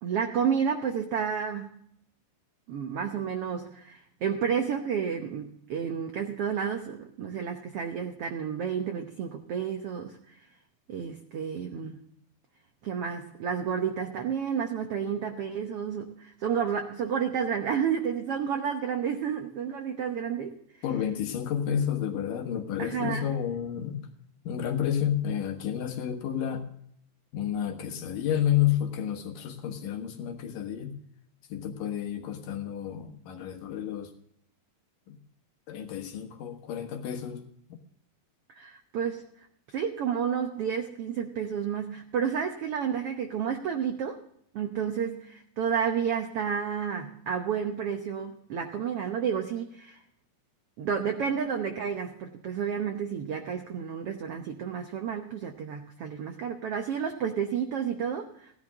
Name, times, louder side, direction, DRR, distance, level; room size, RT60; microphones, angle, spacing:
voice 1, 0.0-1.8 2.7-10.2 10.9-12.0 12.8-20.6 22.8-23.2 38.5-39.3 39.7-44.2 44.5-50.0 50.8-58.5, right 7 dB, 75° right, 5 dB, 1.3 m, -31 dB
voice 2, 20.8-24.1 24.4-26.7 27.3-30.9 31.5-34.1 35.1-35.2 35.7-37.4 37.7-37.8, left 9 dB, 75° left, 5 dB, 3.0 m, -30 dB
16.5 x 11.0 x 3.6 m, 0.69 s
omnidirectional pair, 4.0 m